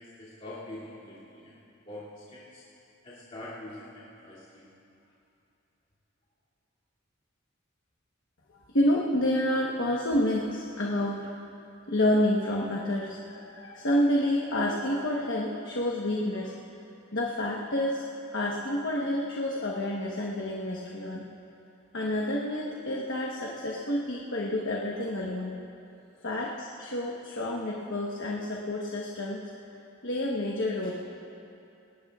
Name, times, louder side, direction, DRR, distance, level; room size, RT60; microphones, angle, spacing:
voice 1, 0.0-1.6 1.9-2.6 3.0-4.6, left 1 dB, 35° left, -11 dB, 2.7 m, -44 dB
voice 2, 8.5-11.2 11.9-16.5 17.1-18.1 18.3-21.2 21.9-25.6 26.2-29.4 30.0-30.9, left 1 dB, 60° left, -3 dB, 1.1 m, -29 dB
20.5 x 18.5 x 2.4 m, 2.7 s
head